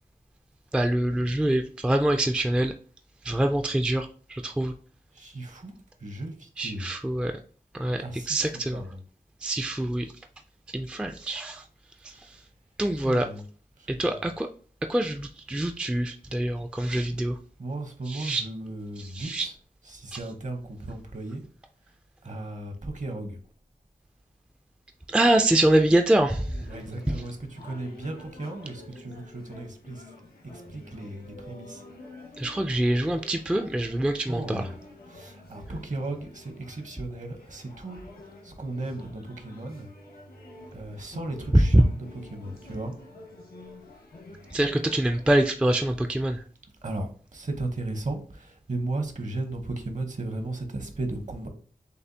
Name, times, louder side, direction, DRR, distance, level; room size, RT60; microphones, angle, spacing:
voice 1, 0.7-2.7 3.2-4.7 6.6-7.3 7.8-8.8 9.4-10.1 10.7-11.6 12.0-12.3 12.8-13.3 13.9-14.5 14.9-17.4 18.1-18.4 19.0-19.5 20.1-20.2 25.1-26.5 27.1-27.2 32.4-34.6 41.5-41.8 44.5-46.4, right 1 dB, 5° right, 5 dB, 0.3 m, -24 dB
voice 2, 5.1-5.7 6.0-6.9 8.0-8.4 8.7-9.0 13.0-13.4 13.8-14.2 17.6-19.5 19.9-21.4 22.2-23.4 26.6-30.0 30.5-31.8 34.3-34.8 35.1-38.0 38.4-39.9 40.7-41.9 42.3-42.9 46.8-51.5, right 2 dB, 55° right, 5 dB, 0.9 m, -35 dB
sound 1, 26.2-45.4, left 2 dB, 90° left, 1.5 m, -48 dB
6.6 x 2.4 x 2.7 m, 0.42 s
wide cardioid pair, 95°, 16 cm